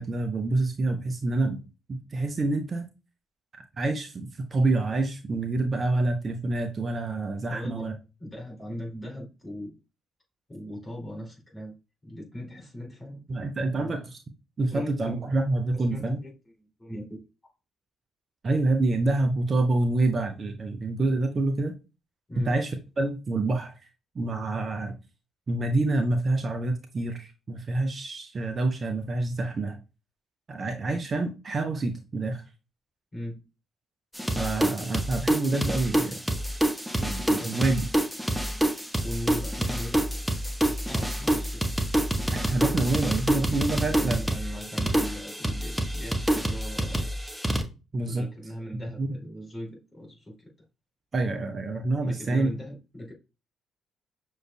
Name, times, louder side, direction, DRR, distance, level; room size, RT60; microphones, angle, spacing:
voice 1, 0.0-1.6 1.9-2.9 3.8-7.9 13.3-14.0 14.6-16.2 18.4-21.7 22.5-23.7 24.1-24.9 25.5-29.8 30.5-32.4 34.4-36.2 36.9-37.9 42.3-44.2 47.9-48.2 48.7-49.1 51.1-52.5, right 2 dB, 35° right, 6 dB, 0.6 m, -27 dB
voice 2, 7.5-7.9 8.2-9.7 10.5-11.7 12.0-13.2 13.8-14.0 14.7-15.3 15.7-16.3 16.6-17.2 22.3-22.6 30.8-31.0 33.1-33.4 37.4-37.6 39.0-40.0 40.7-41.6 43.7-47.1 48.0-50.5 52.0-53.1, equal, 25° left, -1 dB, 2.7 m, -39 dB
sound 1, 34.1-47.6, right 1 dB, ahead, 0.9 m, -27 dB
6.3 x 3.2 x 2.2 m, 0.29 s
figure-of-eight pair, 45°, 0 cm